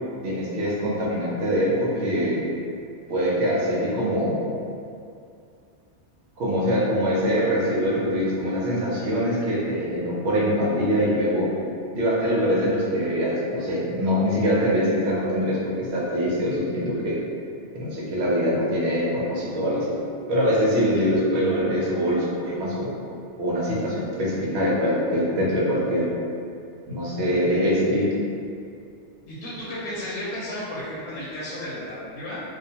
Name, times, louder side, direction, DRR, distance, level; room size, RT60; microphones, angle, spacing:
voice 1, 0.2-2.4 3.1-4.4 6.4-11.5 11.9-17.2 17.7-19.9 20.3-22.9 23.4-26.1 26.9-28.1, equal, 70° right, -5 dB, 0.9 m, -23 dB
voice 2, 29.3-32.4, left 1 dB, 75° left, -8 dB, 0.9 m, -33 dB
2.3 x 2.2 x 2.7 m, 2.4 s
omnidirectional pair, 1.2 m